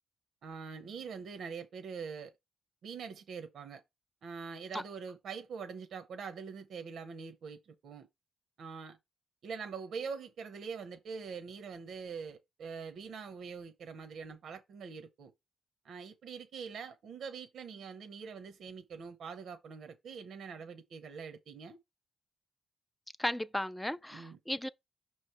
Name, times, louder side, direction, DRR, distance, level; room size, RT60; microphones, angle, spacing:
voice 1, 0.4-2.3 2.8-3.8 4.2-8.1 8.6-9.0 9.4-15.3 15.8-21.8 24.1-24.4, right 5 dB, 65° right, 0.8 m, -44 dB
voice 2, 23.2-24.7, left 1 dB, 5° left, 0.4 m, -35 dB
5.9 x 3.1 x 5.7 m
cardioid pair, 130°, 0 cm